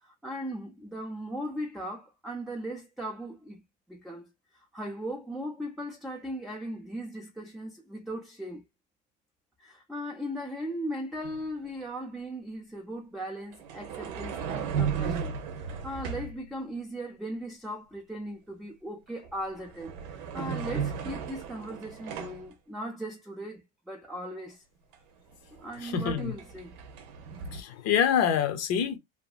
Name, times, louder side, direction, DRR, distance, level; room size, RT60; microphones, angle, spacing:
voice 1, 0.0-3.6 3.9-8.6 9.6-15.3 15.6-24.6 25.6-26.8, equal, ahead, 0.3 m, -38 dB
sound 1, 11.2-11.4 13.5-16.4 19.1-19.3 19.7-22.5 24.9-25.0 25.3-27.6, right 6 dB, 90° right, 0.7 m, -35 dB
voice 2, 25.8-26.3 27.5-29.0, left 8 dB, 50° left, 0.6 m, -26 dB
2.8 x 2.5 x 2.2 m
cardioid pair, 140°, 33 cm